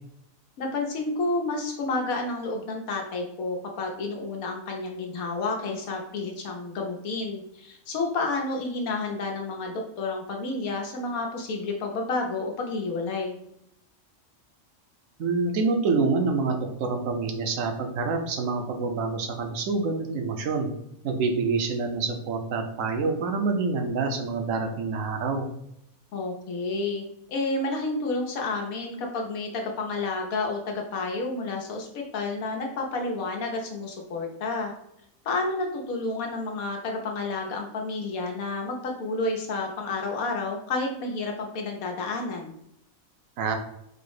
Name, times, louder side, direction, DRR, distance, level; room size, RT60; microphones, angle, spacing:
voice 1, 0.6-13.4 26.1-34.7 35.2-42.5, left 3 dB, 85° left, 2 dB, 1.3 m, -30 dB
voice 2, 15.2-20.7 21.0-25.5 43.4-43.5, right 4 dB, 75° right, 5 dB, 1.1 m, -27 dB
4.7 x 2.1 x 4.7 m, 0.76 s
omnidirectional pair, 1.4 m